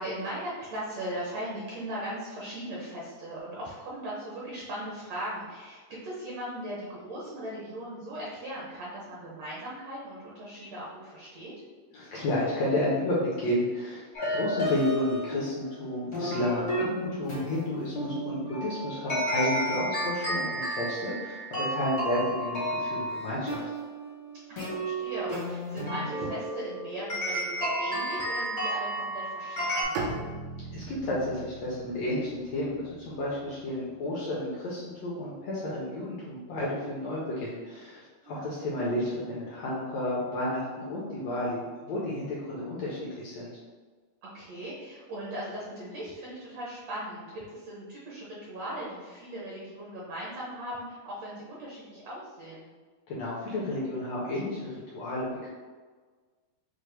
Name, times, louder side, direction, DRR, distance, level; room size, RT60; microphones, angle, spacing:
voice 1, 0.0-11.5 24.5-30.1 38.2-38.5 44.2-52.7, right 1 dB, 70° right, -6 dB, 1.6 m, -38 dB
voice 2, 11.9-23.7 30.7-43.5 53.1-55.5, left 1 dB, 80° left, -6 dB, 1.5 m, -31 dB
sound 1, 14.1-29.8, right 1 dB, 60° left, 0.7 m, -32 dB
Bowed string instrument, 29.9-33.9, right 3 dB, 85° right, 2.4 m, -39 dB
6.2 x 2.1 x 3.3 m, 1.4 s
omnidirectional pair, 3.9 m